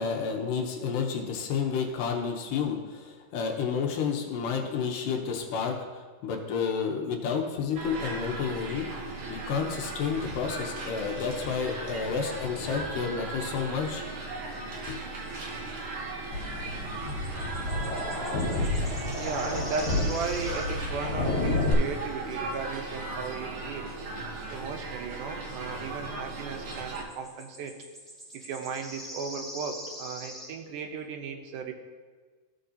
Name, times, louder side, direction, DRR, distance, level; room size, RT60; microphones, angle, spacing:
voice 1, 0.0-5.8 6.2-8.9 9.3-14.0 14.9-15.0, left 6 dB, 80° left, 2 dB, 2.4 m, -30 dB
sound 1, 7.7-27.0, right 3 dB, 60° right, 1.5 m, -37 dB
sound 2, 16.3-21.7, left 2 dB, 60° left, 4.1 m, -30 dB
sound 3, 17.1-21.0 26.7-30.6, equal, ahead, 0.3 m, -44 dB
voice 2, 19.1-23.9 24.5-27.7 28.3-31.7, right 5 dB, 75° right, 4 dB, 2.2 m, -36 dB
14.5 x 6.5 x 2.8 m, 1.4 s
omnidirectional pair, 3.9 m